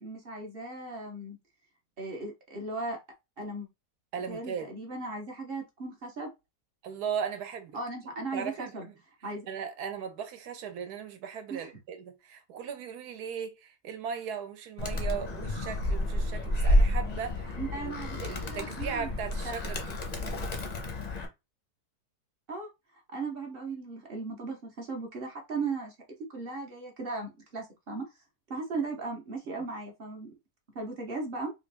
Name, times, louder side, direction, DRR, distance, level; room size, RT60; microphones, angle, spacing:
voice 1, 0.0-1.4 2.0-3.0 3.4-3.7 4.3-6.3 7.7-8.9 9.2-9.5 11.5-11.7 17.6-19.1 22.5-22.7 23.1-25.9 26.3-28.0 28.5-30.3 30.7-31.5, right 3 dB, 45° right, 0.8 m, -37 dB
voice 2, 4.1-4.7 6.8-7.7 8.2-8.9 9.5-17.9 18.2-20.0, right 7 dB, 80° right, 1.2 m, -37 dB
Animal, 14.8-21.3, left 1 dB, 45° left, 0.5 m, -30 dB
3.3 x 2.5 x 3.3 m
omnidirectional pair, 1.7 m